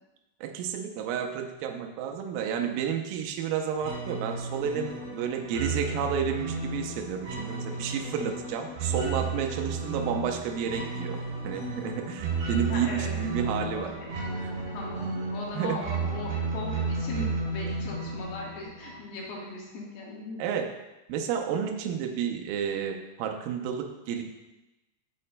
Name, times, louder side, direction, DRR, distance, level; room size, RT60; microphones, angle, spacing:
voice 1, 0.4-11.2 11.4-13.9 14.4-14.5 15.5-16.0 20.4-20.8 21.1-24.2, right 7 dB, 80° right, 3 dB, 2.1 m, -31 dB
sound 1, 3.8-19.3, right 3 dB, 50° right, 3.0 m, -33 dB
voice 2, 12.7-13.1 13.6-14.1 14.7-20.4, left 3 dB, 80° left, -3 dB, 3.5 m, -38 dB
8.4 x 7.5 x 2.2 m, 1.0 s
omnidirectional pair, 4.6 m